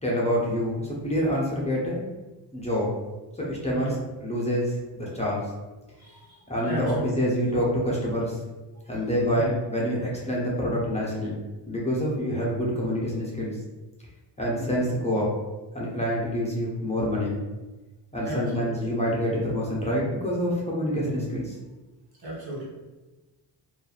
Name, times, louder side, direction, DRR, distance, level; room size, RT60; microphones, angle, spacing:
voice 1, 0.0-2.0 2.5-2.9 3.4-3.9 4.2-5.4 6.5-8.4 8.9-11.4 11.7-13.6 14.4-15.3 15.7-17.4 18.1-21.5, equal, 15° left, -5 dB, 0.7 m, -26 dB
voice 2, 3.7-4.1 6.0-7.2 8.7-9.0 9.3-9.6 18.1-18.9 20.9-21.2 22.2-22.7, right 1 dB, 55° right, -5 dB, 1.2 m, -36 dB
2.6 x 2.4 x 2.4 m, 1.2 s
cardioid pair, 80°, 45 cm